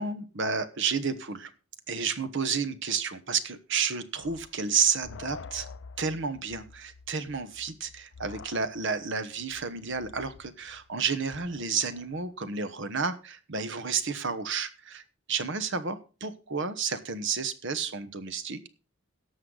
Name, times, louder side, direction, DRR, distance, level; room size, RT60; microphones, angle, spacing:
voice 1, 0.0-1.5 1.9-5.7 6.0-15.0 15.3-18.7, right 5 dB, 65° right, 12 dB, 1.1 m, -31 dB
sound 1, 4.2-12.3, left 4 dB, 60° left, 0.5 m, -48 dB
17.5 x 6.5 x 3.9 m, 0.33 s
head